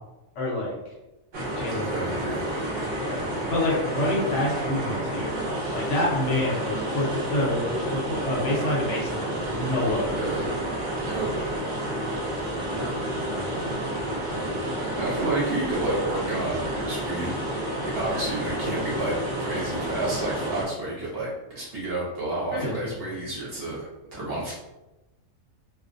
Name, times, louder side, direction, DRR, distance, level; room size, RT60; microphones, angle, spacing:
voice 1, 0.4-0.8 1.6-2.2 3.0-10.5 12.8-13.8 14.3-15.0 22.5-22.9, left 1 dB, 65° left, -5 dB, 1.0 m, -28 dB
sound 1, 1.3-20.6, right 1 dB, 75° right, 0.4 m, -30 dB
voice 2, 1.6-2.9 10.1-10.5 11.1-11.3 14.9-17.3 17.8-24.5, right 2 dB, 55° right, -6 dB, 0.8 m, -30 dB
2.5 x 2.0 x 2.5 m, 1.0 s
omnidirectional pair, 1.4 m